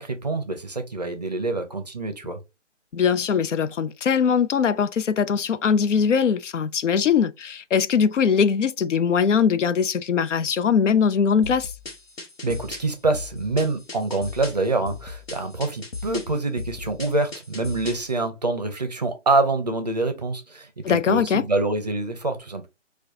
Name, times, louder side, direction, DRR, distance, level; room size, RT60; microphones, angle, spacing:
voice 1, 0.0-2.4 12.4-22.7, right 2 dB, 35° right, 0.5 m, -26 dB
voice 2, 2.9-11.7 20.8-21.5, left 6 dB, 80° left, 0.5 m, -21 dB
sound 1, 11.4-18.1, left 4 dB, 55° left, 1.0 m, -37 dB
4.5 x 2.3 x 2.6 m
figure-of-eight pair, 160°, 36 cm